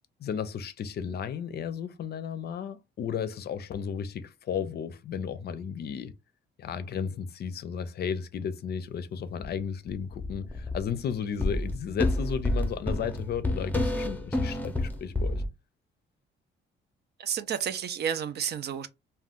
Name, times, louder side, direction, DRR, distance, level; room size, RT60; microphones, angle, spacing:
voice 1, 0.2-6.1 6.6-15.4, left 7 dB, 55° left, 0.5 m, -34 dB
sound 1, 9.4-9.5 9.9-11.0 11.4-15.5, left 1 dB, 10° left, 0.6 m, -29 dB
voice 2, 17.2-18.9, right 8 dB, 55° right, 0.5 m, -31 dB
2.4 x 2.2 x 3.5 m
cardioid pair, 90°, 20 cm